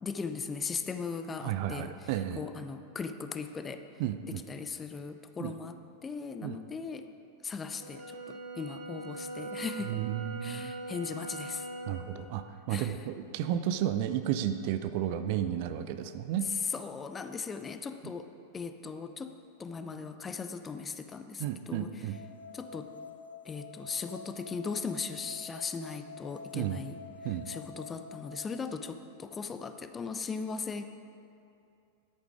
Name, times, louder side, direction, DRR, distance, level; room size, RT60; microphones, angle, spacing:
voice 1, 0.0-1.9 2.4-3.8 4.5-7.1 7.4-10.0 10.4-11.7 12.7-12.9 16.7-18.3 18.5-21.9 22.5-22.9 23.4-27.0 27.5-30.8, left 5 dB, 20° left, 9 dB, 0.5 m, -38 dB
voice 2, 1.4-2.4 4.0-4.4 5.4-5.5 6.4-6.6 9.8-10.7 11.9-16.5 21.4-22.2 26.5-26.8 27.2-27.5, right 11 dB, 45° right, 10 dB, 0.5 m, -33 dB
Brass instrument, 7.7-12.0, right 1 dB, 70° right, 0.9 m, -42 dB
Wind instrument woodwind instrument, 8.0-12.0, right 6 dB, 20° right, 1.2 m, -50 dB
sound 1, 22.1-28.6, left 5 dB, 70° left, 0.6 m, -47 dB
10.5 x 8.7 x 4.9 m, 2.6 s
figure-of-eight pair, 90°, 0 cm